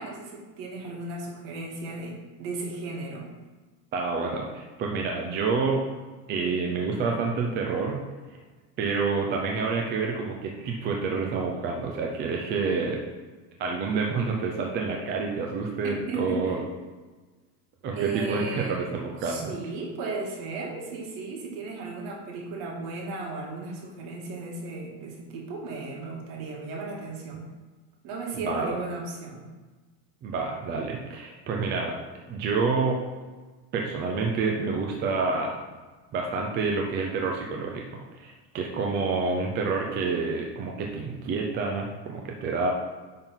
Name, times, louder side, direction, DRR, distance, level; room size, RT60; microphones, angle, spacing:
voice 1, 0.0-3.3 16.1-16.6 17.9-18.9 19.2-27.5 28.0-29.5, right 3 dB, 55° right, -1 dB, 2.1 m, -35 dB
voice 2, 3.9-5.8 6.3-8.0 8.8-13.0 13.6-16.6 17.8-19.5 28.3-28.8 30.2-32.0 32.3-33.0 33.7-35.6 36.1-37.8 38.2-42.7, right 4 dB, 20° right, 0 dB, 0.5 m, -28 dB
9.0 x 3.8 x 5.7 m, 1.3 s
cardioid pair, 175°, 49 cm